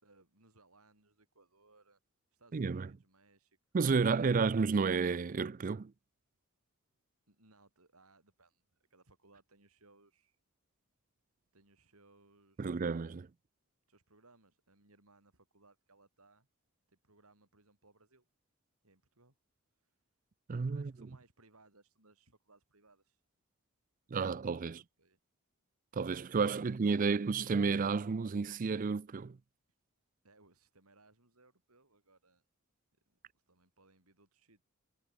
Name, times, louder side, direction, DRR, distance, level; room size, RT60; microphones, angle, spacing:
voice 1, 0.0-2.0 2.3-3.6 4.1-4.5 7.3-8.6 8.9-10.4 11.5-12.8 13.9-16.5 16.9-18.2 18.8-19.4 19.7-20.0 20.7-23.2 24.7-25.2 26.6-27.1 29.7-29.8 30.2-32.4 33.1-34.6, right 2 dB, 80° right, 6.3 m, -66 dB
voice 2, 2.5-2.9 3.7-5.9 12.6-13.3 20.5-20.9 24.1-24.8 25.9-29.4, right 4 dB, 35° right, 0.4 m, -31 dB
head